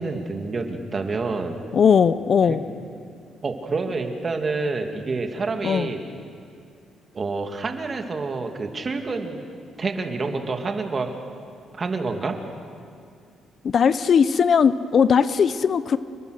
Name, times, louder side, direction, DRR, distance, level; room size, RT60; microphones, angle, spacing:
voice 1, 0.0-1.6 2.4-2.6 3.4-6.0 7.1-9.4 9.8-11.1 11.7-12.4, right 3 dB, 35° right, 4 dB, 2.5 m, -28 dB
voice 2, 1.7-2.6 5.6-5.9 13.6-16.0, left 6 dB, 50° left, 14 dB, 0.7 m, -18 dB
29.5 x 20.0 x 6.6 m, 2.3 s
cardioid pair, 90°, 0 cm